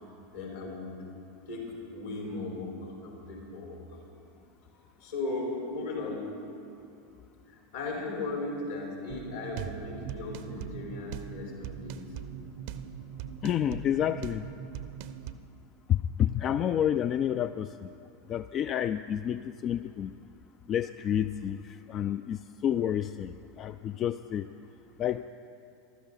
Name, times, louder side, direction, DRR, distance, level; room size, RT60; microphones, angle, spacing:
voice 1, 0.3-0.9 1.5-4.0 4.7-6.2 7.5-12.3 13.9-14.1, left 3 dB, 75° left, -2 dB, 4.3 m, -37 dB
sound 1, 9.1-15.3, right 9 dB, 60° right, 0.6 m, -41 dB
voice 2, 13.4-14.5 15.9-17.9 18.3-20.1 20.7-24.5 25.0-25.2, left 10 dB, 40° left, 12 dB, 0.3 m, -29 dB
14.5 x 12.5 x 5.6 m, 2.8 s
hypercardioid pair, 85°, 0 cm